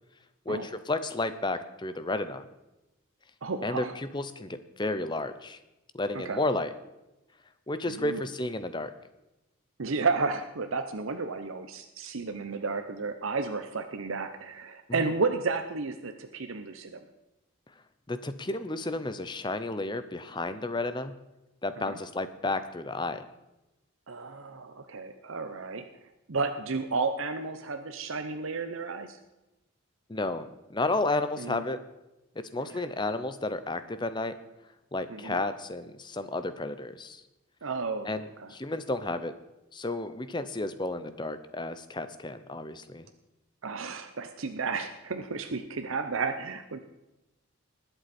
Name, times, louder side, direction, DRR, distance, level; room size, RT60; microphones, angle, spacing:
voice 1, 0.5-2.4 3.6-5.6 5.9-6.7 7.7-8.9 15.0-15.1 18.1-21.1 21.6-23.2 30.1-31.8 32.5-34.4 34.9-37.2 38.0-39.3 39.7-43.1, left 2 dB, 20° left, 11 dB, 0.6 m, -32 dB
voice 2, 3.4-3.9 6.1-6.4 7.9-8.2 9.8-17.0 21.8-22.0 24.1-25.9 26.3-29.2 31.4-31.6 32.6-32.8 35.1-35.4 37.6-38.5 43.6-46.8, right 4 dB, 70° right, 7 dB, 0.8 m, -32 dB
20.0 x 8.0 x 4.3 m, 0.97 s
head